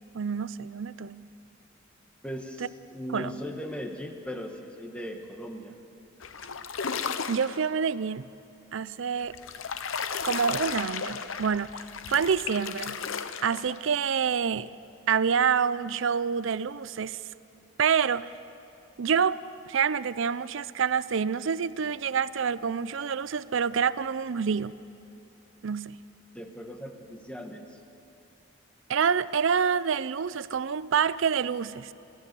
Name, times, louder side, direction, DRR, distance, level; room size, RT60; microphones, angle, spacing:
voice 1, 0.1-1.3 3.1-3.4 7.3-8.3 8.7-9.4 10.2-11.7 12.1-13.0 13.4-14.7 15.1-17.2 17.8-18.3 19.0-24.8 25.6-26.0 28.9-31.9, right 6 dB, 65° right, 0.5 m, -27 dB
voice 2, 2.2-5.8 26.3-27.8, equal, 5° left, 1.4 m, -38 dB
sound 1, 6.2-7.6 9.2-13.9, left 6 dB, 75° left, 0.8 m, -34 dB
29.0 x 14.5 x 7.0 m
head